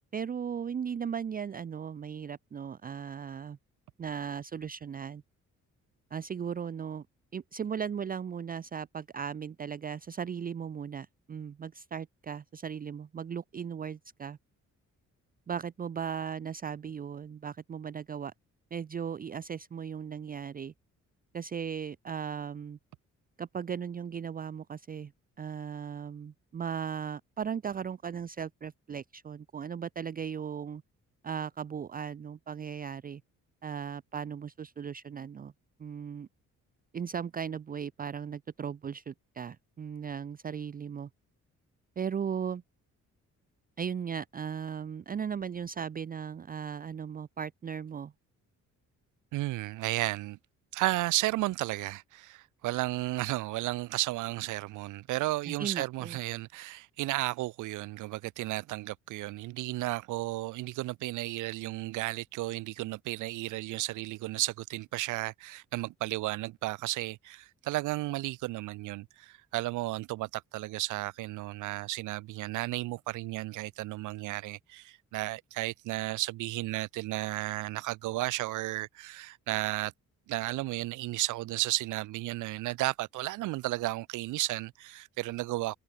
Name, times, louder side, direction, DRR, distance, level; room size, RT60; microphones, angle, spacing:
voice 1, 0.1-3.6 4.0-5.2 6.1-7.1 7.3-14.4 15.5-18.3 18.7-20.7 21.3-22.8 23.4-25.1 25.4-30.8 31.2-33.2 33.6-35.5 35.8-36.3 36.9-41.1 42.0-42.6 43.8-48.1 55.5-56.2, right 7 dB, 30° right, 0.5 m, -37 dB
voice 2, 49.3-50.4 50.7-79.9 80.3-85.8, right 18 dB, 80° right, 0.6 m, -33 dB
cardioid pair, 90°, 30 cm